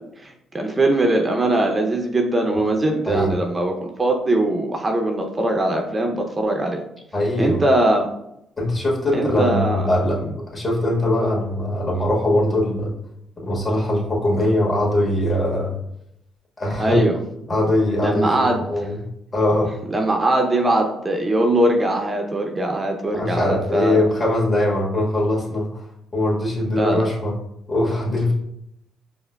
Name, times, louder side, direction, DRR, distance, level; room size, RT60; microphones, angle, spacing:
voice 1, 0.2-6.8 7.4-8.1 9.1-9.9 16.8-17.2 18.0-18.6 19.9-24.1 26.8-27.1, right 1 dB, 30° right, 2 dB, 0.5 m, -21 dB
voice 2, 7.1-7.6 8.6-12.9 13.4-15.8 16.6-17.0 17.5-19.7 23.1-25.8 26.1-27.3 27.7-28.3, left 1 dB, 35° left, -3 dB, 1.5 m, -21 dB
5.0 x 2.1 x 2.2 m, 0.80 s
supercardioid pair, 60°, 0 cm